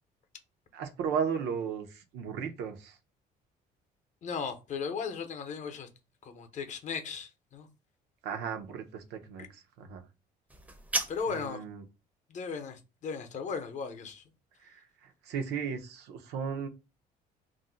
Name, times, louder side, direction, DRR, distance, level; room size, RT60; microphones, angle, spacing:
voice 1, 0.7-3.0 8.2-10.0 11.3-11.8 14.6-16.7, right 6 dB, 80° right, 0.6 m, -35 dB
voice 2, 4.2-5.9 6.2-7.7 9.4-9.5 11.1-11.6 12.3-14.2, left 5 dB, 45° left, 0.6 m, -36 dB
sound 1, 10.5-11.5, right 1 dB, 10° right, 0.5 m, -34 dB
2.5 x 2.1 x 3.7 m
cardioid pair, 110°, 17 cm